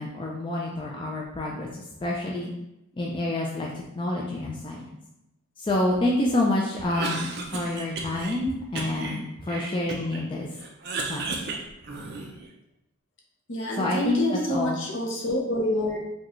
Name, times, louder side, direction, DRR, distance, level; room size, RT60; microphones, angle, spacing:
voice 1, 0.0-2.5 2.9-4.9 5.6-10.5 11.1-11.4 13.8-14.8, left 1 dB, 20° left, -3 dB, 0.3 m, -28 dB
Cough, 6.8-8.4 8.8-10.2 10.6-12.5, right 3 dB, 50° right, 0.5 m, -34 dB
voice 2, 13.5-16.0, left 1 dB, 60° left, 0 dB, 0.7 m, -27 dB
4.7 x 2.3 x 3.0 m, 0.88 s
head